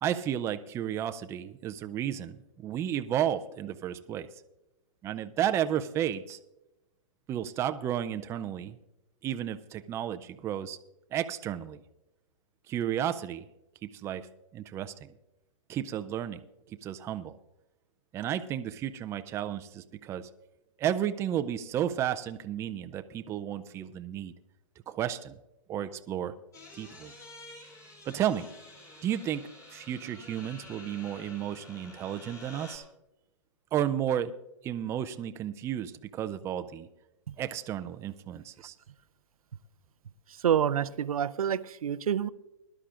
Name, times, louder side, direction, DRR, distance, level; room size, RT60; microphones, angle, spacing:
voice 1, 0.0-4.3 5.0-6.4 7.3-8.8 9.2-10.8 11.1-11.8 12.7-13.4 13.8-14.3 14.5-15.1 15.7-16.4 16.8-17.4 18.1-20.3 20.8-24.3 24.9-25.3 25.7-26.3 26.7-27.1 28.1-28.5 29.0-32.8 33.7-34.3 34.6-36.9 37.4-38.7, right 10 dB, 15° right, 9 dB, 0.4 m, -32 dB
sound 1, 26.5-32.8, left 2 dB, 20° left, 3.1 m, -50 dB
voice 2, 40.4-42.3, right 9 dB, 90° right, 14 dB, 0.5 m, -27 dB
21.0 x 11.5 x 2.5 m, 0.94 s
hypercardioid pair, 140°, 18 cm